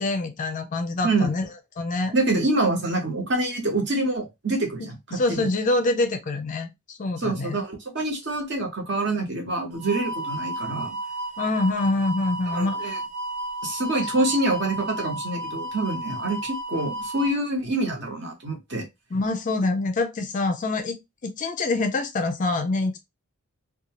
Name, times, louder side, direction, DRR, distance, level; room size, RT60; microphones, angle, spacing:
voice 1, 0.0-1.5 1.8-2.2 5.1-7.6 11.4-12.9 13.9-14.1 19.1-21.0 21.2-23.0, left 2 dB, 35° left, 0.4 m, -25 dB
voice 2, 2.1-5.5 7.2-10.9 12.5-13.0 13.6-18.8, right 2 dB, 50° right, 1.0 m, -26 dB
sound 1, 9.7-17.3, right 1 dB, 75° right, 0.9 m, -33 dB
2.7 x 2.2 x 2.8 m
head